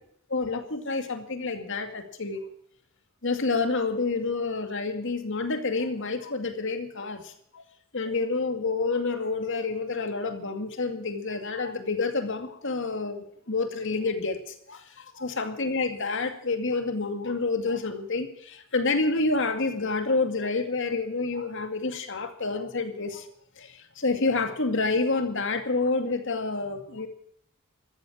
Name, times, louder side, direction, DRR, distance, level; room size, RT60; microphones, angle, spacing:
voice 1, 0.3-2.4 3.2-7.6 7.9-23.3 23.6-27.1, left 3 dB, 60° left, 7 dB, 2.3 m, -28 dB
14.0 x 13.5 x 7.3 m, 0.65 s
head